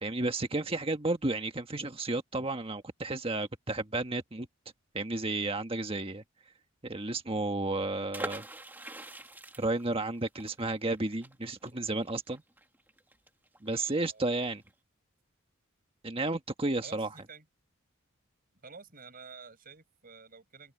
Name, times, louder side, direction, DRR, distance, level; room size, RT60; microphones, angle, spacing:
voice 1, 0.0-4.5 4.9-6.2 6.8-8.4 9.6-12.4 13.6-14.6 16.0-17.1, right 2 dB, 25° right, 1.6 m, -32 dB
sound 1, 8.1-13.7 14.0-14.1 14.4-14.7, right 1 dB, 10° right, 1.8 m, -44 dB
voice 2, 13.7-14.3 16.8-17.5 18.6-20.7, right 5 dB, 45° right, 5.4 m, -50 dB
head